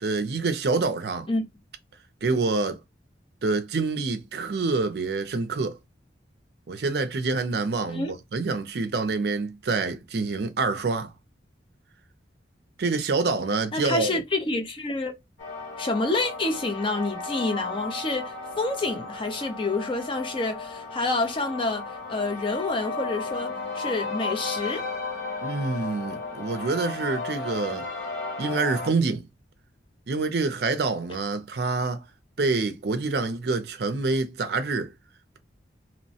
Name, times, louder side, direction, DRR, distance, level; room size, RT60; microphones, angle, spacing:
voice 1, 0.0-1.3 2.2-2.8 3.4-5.8 6.7-11.1 12.8-14.2 25.4-27.9 28.4-29.2 30.1-32.0 32.4-34.9, right 3 dB, 60° right, 0.4 m, -26 dB
voice 2, 13.7-15.1 15.8-24.8, left 2 dB, 25° left, 0.5 m, -28 dB
sound 1, 15.4-28.9, left 3 dB, 90° left, 1.2 m, -34 dB
3.0 x 2.1 x 2.7 m
head